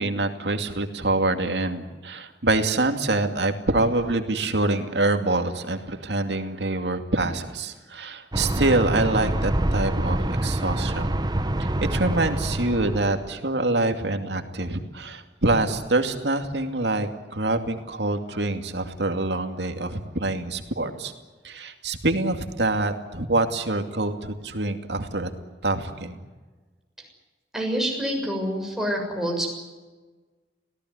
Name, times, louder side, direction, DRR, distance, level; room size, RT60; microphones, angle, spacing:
voice 1, 0.0-11.1 11.8-21.1 21.4-25.3 25.6-26.2, right 2 dB, 75° right, 6 dB, 2.5 m, -25 dB
sound 1, 8.3-13.3, right 1 dB, 25° right, 1.0 m, -26 dB
voice 2, 27.5-29.5, equal, ahead, 0 dB, 6.9 m, -27 dB
26.0 x 18.0 x 9.7 m, 1.3 s
head